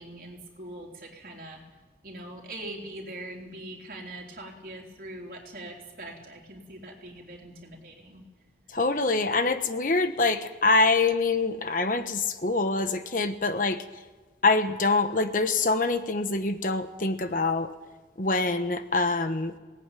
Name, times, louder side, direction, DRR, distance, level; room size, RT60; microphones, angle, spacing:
voice 1, 0.0-1.6 2.0-8.3, right 1 dB, 55° right, 0 dB, 3.9 m, -42 dB
voice 2, 8.7-13.8 14.4-17.7 18.2-19.5, left 3 dB, 50° left, 9 dB, 1.2 m, -25 dB
18.5 x 18.0 x 9.2 m, 1.3 s
head